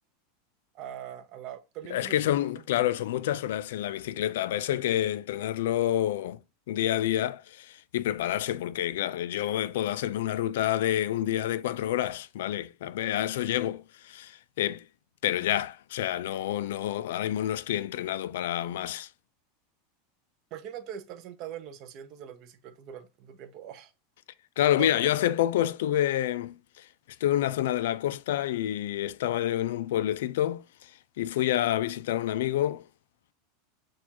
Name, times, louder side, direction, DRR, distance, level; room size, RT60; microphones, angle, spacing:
voice 1, 0.7-2.6 20.5-23.9 24.8-25.1, right 10 dB, 40° right, 0.6 m, -42 dB
voice 2, 1.9-6.4 6.7-14.8 15.2-19.1 24.6-26.8 27.2-30.9 31.2-32.8, left 12 dB, 75° left, 0.3 m, -28 dB
6.2 x 2.4 x 2.9 m
supercardioid pair, 160°, 0 cm